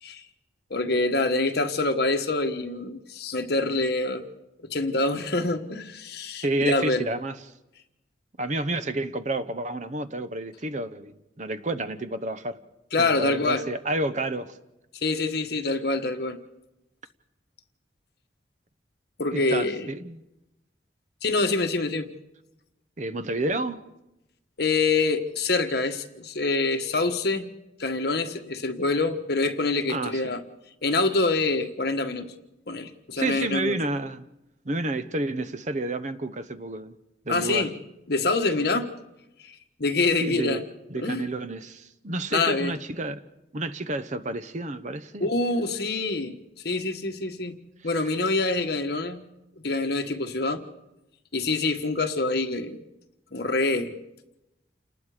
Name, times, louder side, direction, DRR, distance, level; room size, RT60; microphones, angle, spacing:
voice 1, 0.7-4.2 4.7-7.0 12.9-13.6 15.0-16.4 19.2-19.9 21.2-22.1 24.6-27.5 27.8-30.4 30.8-32.3 32.7-33.8 37.3-37.7 38.1-38.9 39.4-39.5 39.8-40.6 40.9-41.2 42.3-42.7 45.2-46.4 46.6-47.5 47.8-49.2 49.6-50.6 51.3-52.8 53.3-53.9, left 3 dB, 60° left, 1.5 m, -25 dB
voice 2, 6.4-7.4 8.4-12.6 13.0-14.5 19.3-20.2 23.0-23.8 29.9-30.3 33.2-34.2 34.6-37.0 37.3-37.7 40.2-40.6 40.9-43.2 43.5-45.3, right 2 dB, 40° right, 0.9 m, -30 dB
29.0 x 19.5 x 5.0 m
head